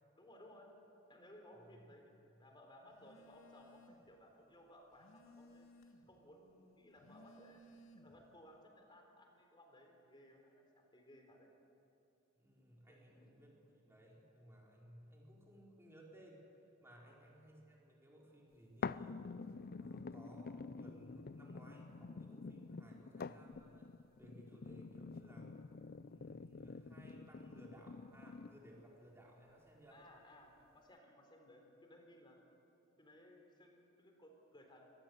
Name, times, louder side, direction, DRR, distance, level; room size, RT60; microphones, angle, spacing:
voice 1, 0.1-0.7 1.1-5.7 6.1-7.6 8.0-11.5 12.9-13.3 17.0-17.2 29.9-32.4 33.0-34.9, left 1 dB, 25° left, 2 dB, 4.0 m, -61 dB
voice 2, 1.5-1.8 12.4-16.4 16.8-19.2 19.8-23.9 24.2-25.5 26.1-30.0, right 1 dB, 10° right, -3 dB, 4.9 m, -60 dB
Telephone, 2.9-4.2 4.5-6.2 6.8-8.3, left 1 dB, 70° left, 2.3 m, -62 dB
sound 1, 18.8-28.8 29.4-29.5, left 4 dB, 45° left, 0.5 m, -48 dB
23.5 x 19.0 x 8.1 m, 2.8 s
head